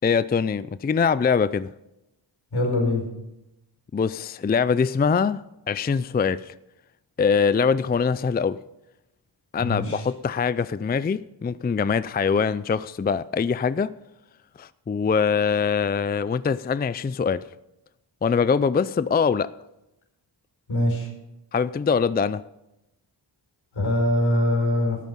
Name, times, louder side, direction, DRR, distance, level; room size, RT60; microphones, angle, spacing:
voice 1, 0.0-1.7 3.9-6.5 7.2-8.6 9.5-13.9 14.6-17.4 18.2-19.5 21.5-22.4, left 6 dB, 20° left, 16 dB, 0.4 m, -23 dB
voice 2, 2.5-3.0 9.6-10.0 20.7-21.1 23.7-25.0, left 1 dB, 80° left, 1 dB, 5.0 m, -23 dB
12.5 x 9.2 x 7.1 m, 0.91 s
cardioid pair, 60°, 46 cm